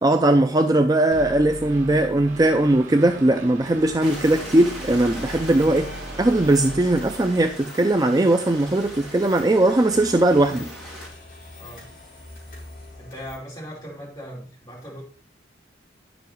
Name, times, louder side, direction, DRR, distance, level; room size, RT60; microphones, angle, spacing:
voice 1, 0.0-5.9 6.2-10.7, right 1 dB, 20° right, 0.4 m, -19 dB
sound 1, 1.1-7.6, right 1 dB, 45° right, 2.1 m, -38 dB
sound 2, 3.6-13.4, left 1 dB, 45° left, 4.8 m, -44 dB
Stream, 4.0-11.1, equal, ahead, 2.5 m, -40 dB
voice 2, 11.6-11.9 13.0-15.0, equal, 20° left, 5.7 m, -38 dB
9.8 x 7.0 x 4.6 m
head